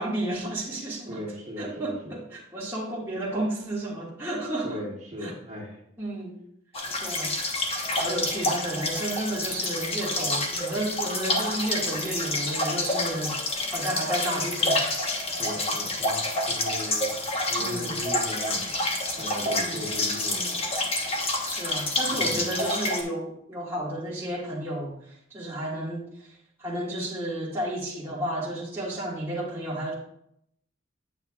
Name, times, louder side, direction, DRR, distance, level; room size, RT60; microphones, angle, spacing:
voice 1, 0.0-1.2 1.6-4.8 5.2-5.3 6.0-6.4 7.0-7.3 8.0-14.9 17.6-18.0 19.4-19.8 21.4-25.0 25.3-26.1 26.6-29.9, right 1 dB, 10° right, -7 dB, 1.7 m, -32 dB
voice 2, 1.1-2.2 4.6-5.8 15.3-17.1 17.5-18.7 19.2-20.6 22.1-22.5, equal, 40° right, -4 dB, 1.7 m, -37 dB
sound 1, 6.7-23.0, left 2 dB, 30° left, 1.0 m, -28 dB
9.0 x 6.8 x 2.3 m, 0.73 s
head